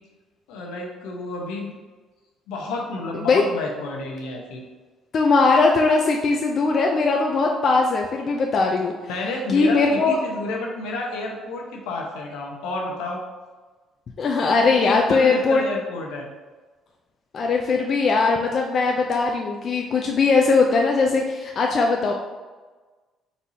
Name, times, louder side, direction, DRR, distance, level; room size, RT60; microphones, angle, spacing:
voice 1, 0.5-1.8 2.5-4.6 9.1-13.2 14.7-16.3, left 2 dB, 85° left, 0 dB, 0.9 m, -30 dB
voice 2, 5.1-8.9 9.5-10.2 14.2-15.6 17.3-22.1, left 4 dB, 55° left, 1 dB, 0.5 m, -20 dB
4.6 x 4.2 x 2.7 m, 1.3 s
supercardioid pair, 65°, 0 cm